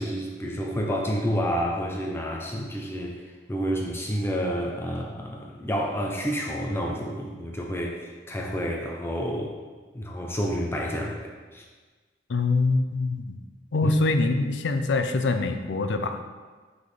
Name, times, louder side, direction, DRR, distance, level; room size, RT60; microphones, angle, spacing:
voice 1, 0.0-3.2 3.5-9.5 9.9-11.6 13.8-14.0, equal, 15° left, -1 dB, 0.5 m, -29 dB
voice 2, 12.3-13.4 13.7-16.2, left 3 dB, 90° left, 8 dB, 0.5 m, -24 dB
6.0 x 5.3 x 3.3 m, 1.4 s
head